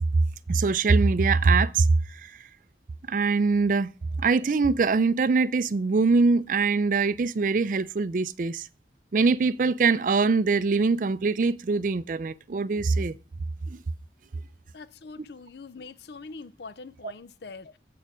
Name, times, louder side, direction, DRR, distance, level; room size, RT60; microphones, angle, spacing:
voice 1, 0.5-2.3 3.1-3.9 4.2-8.7 9.1-13.2 13.7-13.8, right 4 dB, 45° right, 0.4 m, -23 dB
voice 2, 14.7-17.8, left 4 dB, 65° left, 0.6 m, -43 dB
8.4 x 6.7 x 6.0 m
head